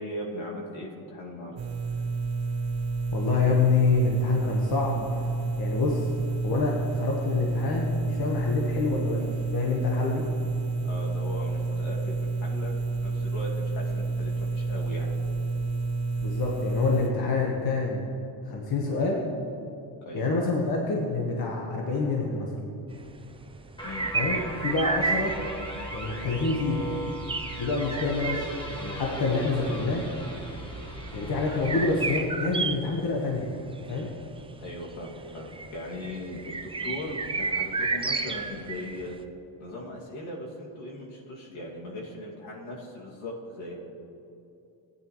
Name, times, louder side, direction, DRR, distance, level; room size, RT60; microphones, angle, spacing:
voice 1, 0.0-1.6 10.8-12.7 13.0-15.1 20.1-20.3 23.8-24.5 34.6-39.2 39.6-43.9, left 1 dB, 75° left, -3 dB, 2.5 m, -38 dB
sound 1, 1.6-17.1, right 3 dB, 70° right, 1.4 m, -29 dB
voice 2, 3.1-5.3 5.6-6.1 6.4-10.2 16.2-18.0 18.5-19.2 20.1-22.5 24.1-25.4 25.9-26.9 27.6-30.1 31.1-33.5 33.9-34.1, left 3 dB, 50° left, -1 dB, 1.4 m, -27 dB
sound 2, 22.9-39.2, right 4 dB, 10° right, 0.4 m, -33 dB
sound 3, 23.8-32.2, right 1 dB, 10° left, 1.4 m, -38 dB
15.0 x 9.8 x 3.2 m, 2.7 s
cardioid pair, 95°, 48 cm